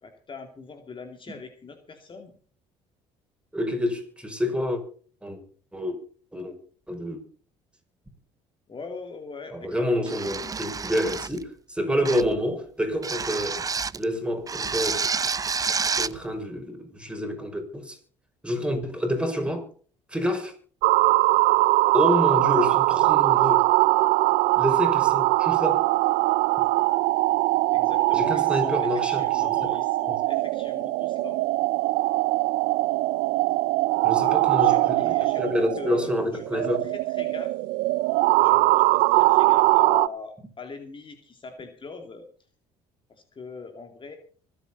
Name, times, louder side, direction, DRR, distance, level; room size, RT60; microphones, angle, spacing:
voice 1, 0.0-2.3 8.7-10.6 27.7-31.4 34.2-37.5 38.2-42.3 43.1-44.2, left 4 dB, 35° left, 2.7 m, -41 dB
voice 2, 3.5-4.8 5.2-5.4 5.7-6.0 6.3-6.5 6.9-7.2 9.5-13.6 14.0-15.1 16.0-18.0 18.4-19.7 20.1-20.5 21.9-23.7 24.6-25.9 28.1-29.7 30.1-30.2 34.0-36.8, equal, 5° right, 5.6 m, -28 dB
sound 1, 10.1-11.4 12.0-12.4 13.0-14.0 14.5-16.2, right 5 dB, 25° right, 0.6 m, -29 dB
sound 2, 20.8-40.1, right 20 dB, 75° right, 0.5 m, -22 dB
25.0 x 8.7 x 4.1 m
supercardioid pair, 75°, 14 cm